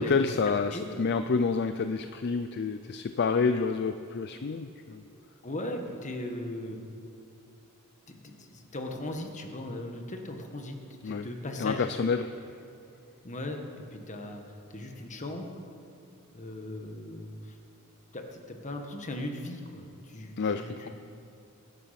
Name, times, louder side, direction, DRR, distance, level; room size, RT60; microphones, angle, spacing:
voice 1, 0.0-5.0 11.0-11.3 11.6-12.4 20.4-20.9, left 4 dB, 50° left, 9 dB, 0.5 m, -28 dB
voice 2, 5.4-6.8 8.1-10.8 11.0-11.9 13.2-15.6 16.3-17.4 18.1-20.9, left 1 dB, 35° left, 3 dB, 1.5 m, -38 dB
19.5 x 10.5 x 5.9 m, 2.6 s
head